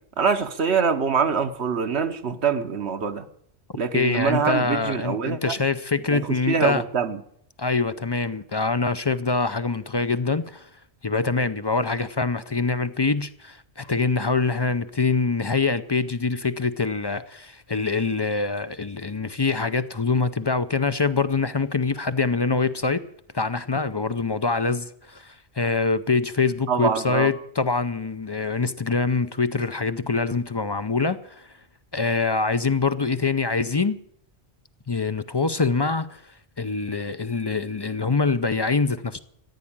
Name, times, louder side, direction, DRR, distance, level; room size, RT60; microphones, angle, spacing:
voice 1, 0.2-3.3 3.7-5.5 6.1-7.2 26.7-27.3, right 6 dB, 75° right, 1.3 m, -24 dB
voice 2, 3.9-6.8 7.6-10.7 11.0-23.0 23.3-31.5 31.9-34.0 34.9-36.2 36.6-39.2, left 4 dB, 35° left, 0.4 m, -24 dB
14.5 x 9.8 x 8.7 m
omnidirectional pair, 1.1 m